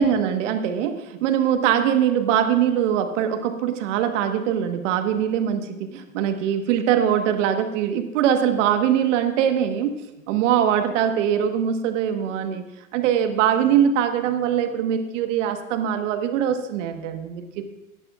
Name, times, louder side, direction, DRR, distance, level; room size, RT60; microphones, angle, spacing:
voice 1, 0.0-12.6 12.9-17.6, right 9 dB, 55° right, 7 dB, 1.4 m, -22 dB
16.5 x 10.5 x 2.4 m, 0.96 s
hypercardioid pair, 115°, 43 cm